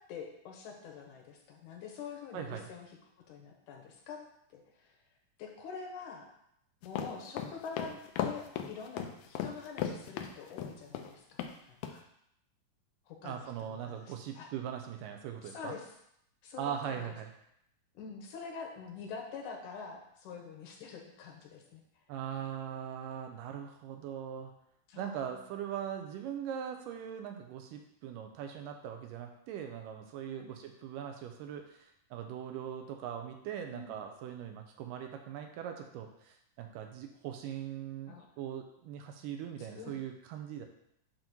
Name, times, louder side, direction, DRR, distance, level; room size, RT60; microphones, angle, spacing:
voice 1, 0.1-2.9 3.3-4.2 4.5-4.9 5.4-6.3 6.8-12.0 13.1-14.5 15.4-15.9 16.4-17.1 18.0-21.8 24.9-25.4 30.3-30.5 33.7-34.0 38.1-38.3 39.6-39.9, left 5 dB, 75° left, 1 dB, 2.2 m, -46 dB
voice 2, 2.3-2.7 13.2-15.8 16.6-17.3 22.1-24.5 25.0-40.7, right 9 dB, 85° right, 4 dB, 2.2 m, -41 dB
sound 1, 6.8-11.1 11.4-11.5 11.8-11.9, left 9 dB, 90° left, 1.6 m, -36 dB
7.7 x 2.9 x 5.9 m, 0.74 s
omnidirectional pair, 3.9 m